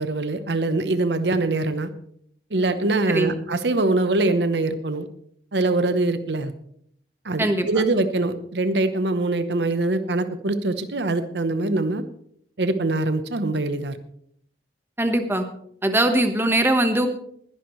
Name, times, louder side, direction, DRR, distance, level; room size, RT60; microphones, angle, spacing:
voice 1, 0.0-1.9 2.5-5.1 5.5-6.5 7.2-12.0 12.6-14.0, right 2 dB, 75° right, 10 dB, 0.9 m, -23 dB
voice 2, 15.0-15.4 15.8-17.1, right 1 dB, 15° right, 6 dB, 1.2 m, -21 dB
21.0 x 11.0 x 3.2 m, 0.66 s
head